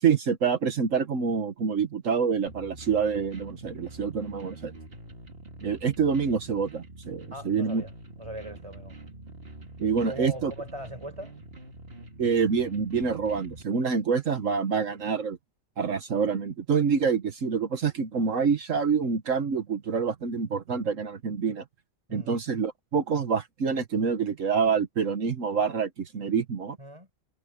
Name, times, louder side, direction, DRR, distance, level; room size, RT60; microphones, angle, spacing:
voice 1, 0.0-4.7 5.6-7.8 9.8-10.5 12.2-15.4 15.8-21.6 22.1-26.8, right 6 dB, 65° right, 1.6 m, -26 dB
sound 1, 2.5-13.6, right 2 dB, 45° right, 2.6 m, -45 dB
voice 2, 7.3-7.9 8.2-9.0 9.9-11.3 22.1-22.3 26.8-27.1, right 1 dB, 20° right, 5.0 m, -40 dB
omnidirectional pair, 1.4 m